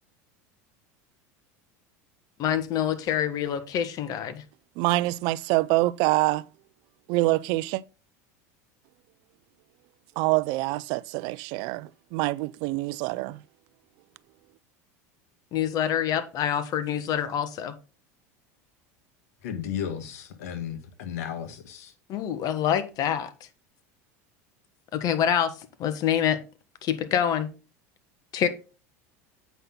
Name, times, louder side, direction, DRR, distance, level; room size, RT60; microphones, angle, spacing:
voice 1, 2.4-4.4 15.5-17.7 22.1-23.3 24.9-25.5 25.8-26.4 26.8-27.5 28.3-28.5, left 9 dB, 50° left, 1.3 m, -26 dB
voice 2, 4.8-6.4 7.1-7.8 10.2-13.4, right 20 dB, 60° right, 0.4 m, -25 dB
voice 3, 19.4-21.9, left 8 dB, 80° left, 1.6 m, -34 dB
8.1 x 5.7 x 3.8 m
supercardioid pair, 100°, 8 cm